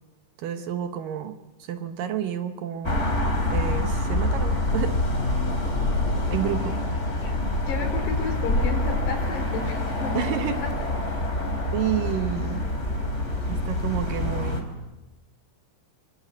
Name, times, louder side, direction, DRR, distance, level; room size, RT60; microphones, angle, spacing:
voice 1, 0.4-3.1 3.5-5.0 6.3-6.8 10.1-10.6 11.7-12.6 13.5-14.7, right 10 dB, 70° right, 8 dB, 2.4 m, -30 dB
sound 1, 2.8-14.6, left 2 dB, 20° left, 3.2 m, -26 dB
voice 2, 6.4-6.7 7.1-7.4 7.7-10.5 14.2-14.6, left 3 dB, 75° left, 4 dB, 5.7 m, -33 dB
sound 2, 7.4-14.5, right 3 dB, 20° right, 2.0 m, -41 dB
25.0 x 22.5 x 8.5 m, 1.1 s
omnidirectional pair, 4.8 m